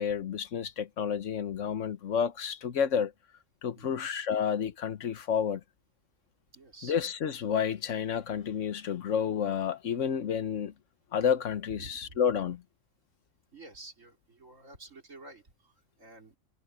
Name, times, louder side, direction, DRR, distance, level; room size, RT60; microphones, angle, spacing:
voice 1, 0.0-3.1 3.6-5.6 6.8-10.7 11.1-12.6, left 7 dB, 75° left, 1.3 m, -30 dB
voice 2, 3.7-4.1 6.5-7.0 11.7-12.2 13.5-16.4, right 2 dB, 80° right, 4.2 m, -50 dB
omnidirectional pair, 1.3 m